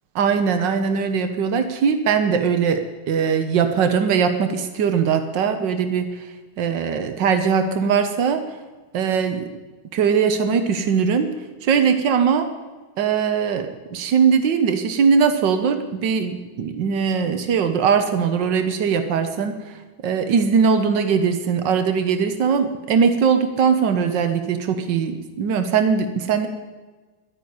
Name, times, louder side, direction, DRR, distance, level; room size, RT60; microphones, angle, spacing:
voice 1, 0.2-6.3 6.6-8.4 8.9-9.5 9.9-11.3 11.6-12.5 13.0-19.8 20.0-26.5, right 6 dB, 90° right, 7 dB, 1.7 m, -20 dB
11.5 x 11.0 x 9.5 m, 1.3 s
omnidirectional pair, 1.9 m